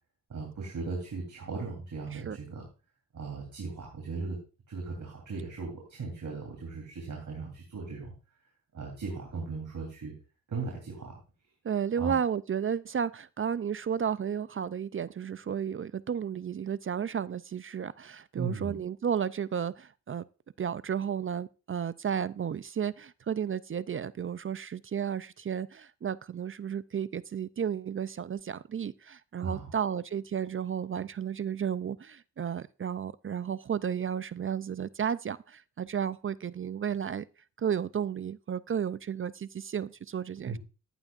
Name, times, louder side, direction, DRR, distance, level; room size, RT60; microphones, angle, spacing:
voice 1, 0.3-2.6 3.1-4.4 4.7-8.1 8.7-10.2 10.5-11.2 12.0-12.1 18.4-18.8 29.4-29.7 40.4-40.6, right 4 dB, 60° right, 3.5 m, -37 dB
voice 2, 11.6-20.2 20.6-37.3 37.6-40.6, right 8 dB, 40° right, 0.4 m, -33 dB
14.5 x 11.0 x 2.5 m
cardioid pair, 80°, 34 cm